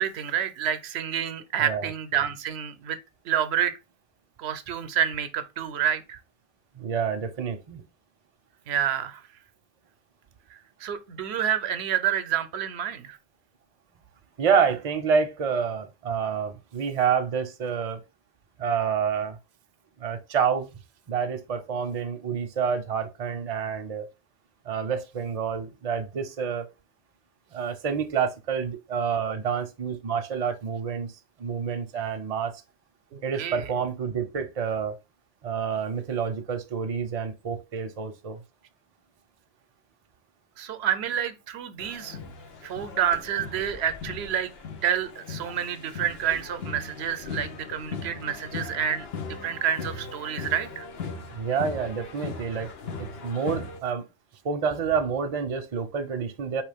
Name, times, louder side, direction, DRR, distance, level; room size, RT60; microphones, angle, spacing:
voice 1, 0.0-3.0 3.3-3.8 4.4-6.2 8.7-9.2 10.8-13.2 33.1-33.7 40.6-42.2 42.6-44.5 44.8-49.1 49.4-50.9, right 9 dB, 80° right, 0.8 m, -28 dB
voice 2, 6.8-7.8 14.4-18.0 18.6-19.4 20.0-20.7 21.1-24.0 24.6-26.7 27.5-32.5 33.2-34.9 35.4-38.4 51.3-52.7 53.0-54.1 54.4-56.6, right 6 dB, 40° right, 0.6 m, -28 dB
sound 1, 41.8-53.8, left 4 dB, 70° left, 1.1 m, -38 dB
4.7 x 3.0 x 3.4 m
omnidirectional pair, 1.1 m